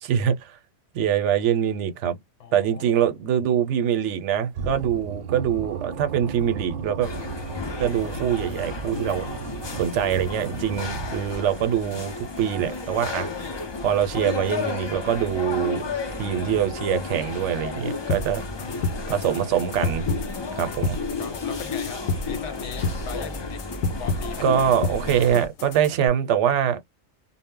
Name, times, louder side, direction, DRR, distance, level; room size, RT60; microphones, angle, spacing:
voice 1, 0.0-0.6 0.9-2.2 2.5-7.1 7.8-9.2 9.7-13.3 13.8-15.9 16.2-18.4 19.1-20.1 20.5-21.0 24.4-26.8, right 9 dB, 85° right, 0.9 m, -24 dB
voice 2, 2.4-3.0 18.3-19.0 20.7-23.6 24.0-24.5, left 7 dB, 85° left, 1.0 m, -40 dB
sound 1, 4.5-11.8, right 6 dB, 55° right, 0.7 m, -35 dB
sound 2, 7.0-25.5, left 4 dB, 40° left, 0.4 m, -33 dB
sound 3, 18.1-26.1, left 3 dB, 65° left, 0.7 m, -30 dB
2.0 x 2.0 x 3.6 m
omnidirectional pair, 1.2 m